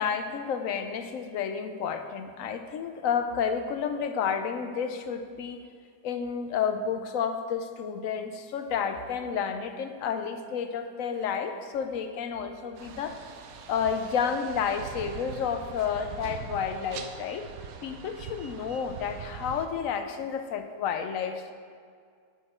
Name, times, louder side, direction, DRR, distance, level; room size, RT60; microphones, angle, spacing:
voice 1, 0.0-5.6 6.0-13.2 13.7-17.5 17.8-21.5, left 7 dB, 65° left, 7 dB, 0.9 m, -31 dB
sound 1, 12.8-19.7, right 6 dB, 65° right, 1.0 m, -42 dB
9.8 x 8.7 x 4.3 m, 2.1 s
omnidirectional pair, 1.9 m